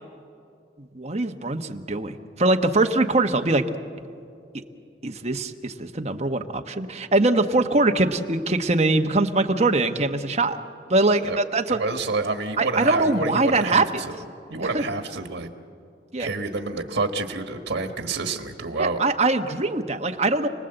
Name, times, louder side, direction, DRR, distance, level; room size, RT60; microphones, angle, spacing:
voice 1, 0.9-3.6 5.0-10.6 10.9-11.8 12.6-14.0 14.7-14.8 16.1-16.3 18.8-20.5, right 2 dB, 35° right, 5 dB, 1.2 m, -22 dB
voice 2, 11.7-14.2 14.5-15.5 16.2-19.0, right 3 dB, 85° right, 5 dB, 1.5 m, -28 dB
29.5 x 19.5 x 8.0 m, 2.4 s
head